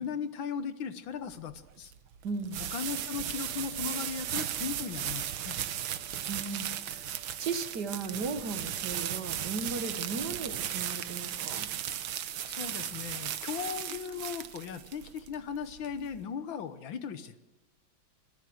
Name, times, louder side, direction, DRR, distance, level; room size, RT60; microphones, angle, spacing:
voice 1, 0.0-1.9 2.7-5.6 12.5-17.3, left 7 dB, 75° left, 11 dB, 1.8 m, -37 dB
sound 1, 1.3-16.2, right 10 dB, 80° right, 1.7 m, -36 dB
voice 2, 2.2-2.6 6.3-11.7, right 4 dB, 55° right, 8 dB, 1.9 m, -36 dB
sound 2, 2.9-10.5, right 3 dB, 35° left, 2.3 m, -60 dB
25.0 x 14.5 x 7.8 m, 1.0 s
omnidirectional pair, 2.2 m